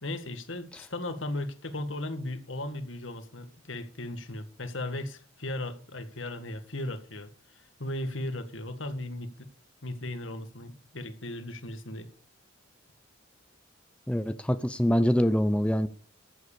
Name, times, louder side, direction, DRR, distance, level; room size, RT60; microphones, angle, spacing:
voice 1, 0.0-9.5 9.8-12.1, left 1 dB, 65° left, 1.9 m, -36 dB
voice 2, 14.1-15.9, equal, 5° left, 0.7 m, -24 dB
14.5 x 8.0 x 6.8 m
head